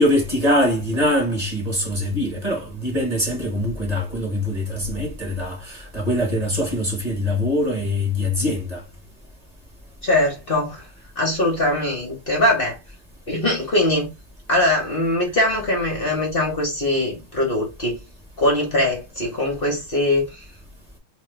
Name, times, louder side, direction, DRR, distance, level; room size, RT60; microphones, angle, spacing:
voice 1, 0.0-8.8, left 1 dB, 25° right, 1.1 m, -23 dB
voice 2, 10.0-10.8 11.2-12.8 13.3-14.1 14.5-18.0 18.4-20.3, left 1 dB, 40° left, 0.8 m, -21 dB
3.1 x 3.0 x 3.2 m
omnidirectional pair, 2.3 m